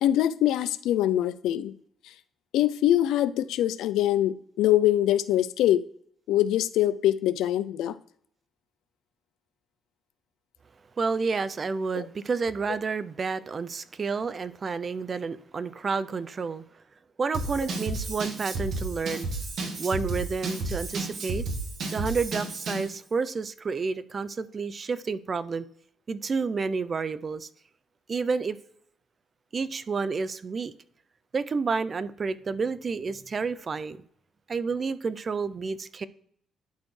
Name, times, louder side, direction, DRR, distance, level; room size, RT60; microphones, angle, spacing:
voice 1, 0.0-1.7 2.5-5.8 6.3-8.0 11.9-12.0, left 12 dB, 85° left, 0.4 m, -23 dB
voice 2, 11.0-16.6 17.2-19.3 19.8-21.4 21.9-25.7 26.1-27.5 28.1-28.6 29.5-30.7 31.3-34.0 34.5-36.1, right 4 dB, 35° right, 0.4 m, -30 dB
Drum kit / Drum, 17.3-22.9, right 2 dB, 60° right, 1.6 m, -32 dB
11.5 x 4.3 x 3.2 m
cardioid pair, 115°, 0 cm